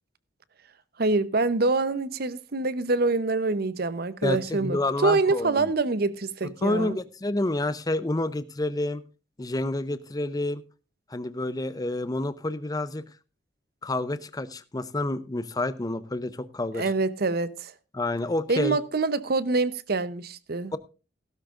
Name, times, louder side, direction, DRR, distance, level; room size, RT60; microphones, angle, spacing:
voice 1, 1.0-7.0 16.7-17.7 18.5-20.8, right 3 dB, 55° right, 0.8 m, -25 dB
voice 2, 4.2-5.7 6.6-9.0 9.4-10.6 11.1-13.0 13.8-16.8 17.9-18.8, left 2 dB, 20° left, 0.6 m, -29 dB
16.0 x 13.0 x 2.5 m
head